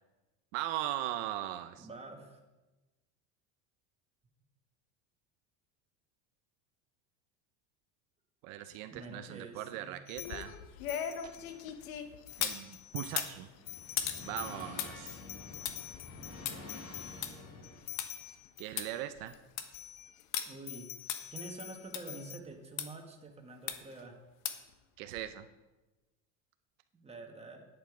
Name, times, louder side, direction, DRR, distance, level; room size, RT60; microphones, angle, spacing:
voice 1, 0.5-1.9 8.4-10.5 12.4-13.5 14.2-15.2 18.6-19.3 25.0-25.5, right 13 dB, 75° right, 9 dB, 0.7 m, -39 dB
voice 2, 1.7-2.4 8.9-10.0 20.4-20.9 21.3-24.2 26.9-27.7, right 3 dB, 15° right, 2 dB, 1.6 m, -47 dB
sound 1, 10.1-11.8 12.2-13.3 13.6-19.4 19.7-20.2 20.7-22.4, left 14 dB, 60° left, 0.6 m, -48 dB
sound 2, 10.2-12.6 13.0-18.1 18.4-18.5 18.8-18.9 19.3-19.8 20.3-20.4 21.1-21.2 21.9-22.0 22.8-22.9 23.7-24.0 24.4-24.7 25.1-25.2, left 10 dB, 85° left, 1.1 m, -38 dB
sound 3, 13.1-18.0, left 2 dB, 40° left, 3.6 m, -49 dB
10.5 x 8.2 x 4.9 m, 1.1 s
supercardioid pair, 125°, 40 cm